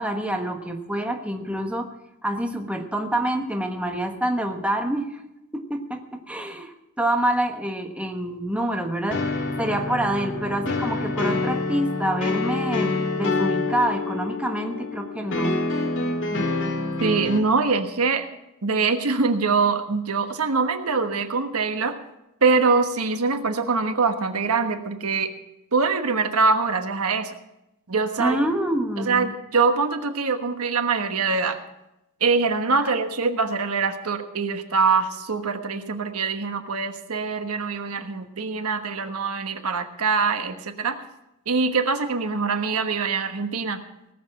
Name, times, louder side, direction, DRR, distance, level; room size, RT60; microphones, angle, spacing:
voice 1, 0.0-1.9 2.2-5.2 5.5-9.3 9.6-15.6 28.2-29.3, right 1 dB, 5° right, 4 dB, 1.3 m, -27 dB
sound 1, 9.1-17.4, left 3 dB, 60° left, 1.9 m, -26 dB
voice 2, 17.0-18.3 18.6-21.9 22.4-25.3 25.7-27.3 27.9-28.4 29.1-31.6 32.2-41.0 41.5-43.8, right 4 dB, 85° right, 7 dB, 1.2 m, -23 dB
18.5 x 7.3 x 7.4 m, 0.89 s
head